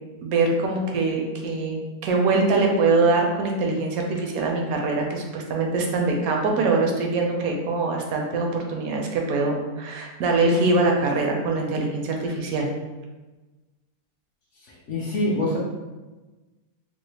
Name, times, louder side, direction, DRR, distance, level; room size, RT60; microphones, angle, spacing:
voice 1, 0.2-12.7, right 3 dB, 70° right, 1 dB, 1.0 m, -23 dB
voice 2, 14.6-15.6, left 1 dB, 60° left, -4 dB, 0.8 m, -25 dB
3.8 x 2.1 x 3.2 m, 1.2 s
omnidirectional pair, 1.8 m